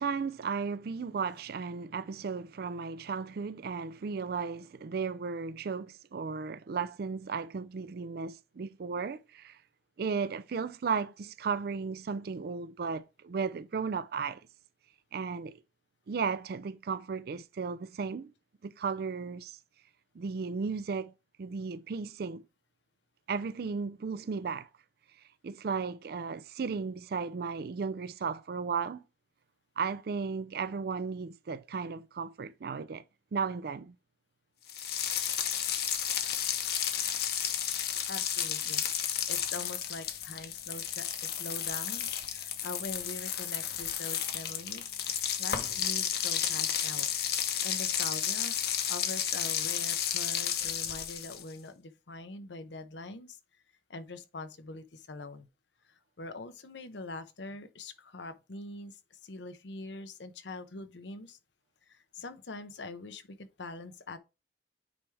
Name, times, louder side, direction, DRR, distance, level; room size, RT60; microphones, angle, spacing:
voice 1, 0.0-9.6 10.0-14.4 15.1-15.6 16.1-18.3 18.6-19.6 20.1-21.1 21.4-22.4 23.3-24.7 25.4-29.0 29.8-33.0 33.3-34.0, right 5 dB, 60° right, 0.4 m, -35 dB
sound 1, 34.7-51.5, left 9 dB, 60° left, 0.9 m, -32 dB
voice 2, 38.1-47.1 47.6-48.6 48.9-53.6 53.9-55.5 55.8-61.4 61.9-64.2, left 2 dB, 85° left, 0.8 m, -43 dB
8.8 x 3.4 x 3.3 m
head